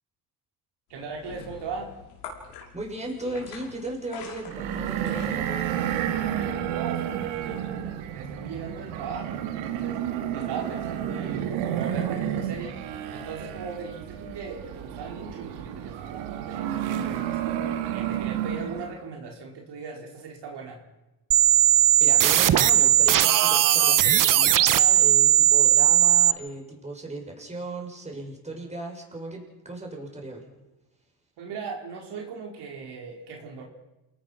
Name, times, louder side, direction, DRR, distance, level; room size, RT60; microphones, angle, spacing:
sound 1, 0.9-6.0, left 6 dB, 85° left, 6.2 m, -45 dB
voice 1, 0.9-1.9 6.4-10.0 10.3-12.7 13.1-17.6 17.9-20.8 31.4-33.6, right 5 dB, 60° right, 0 dB, 4.9 m, -39 dB
voice 2, 2.7-5.9 22.0-30.4, right 2 dB, 15° right, 0 dB, 6.8 m, -36 dB
sound 2, 4.5-19.0, right 10 dB, 80° right, 2.5 m, -31 dB
sound 3, 21.3-26.3, right 12 dB, 45° right, 1.1 m, -18 dB
28.5 x 18.5 x 5.9 m, 0.99 s
supercardioid pair, 95°, 46 cm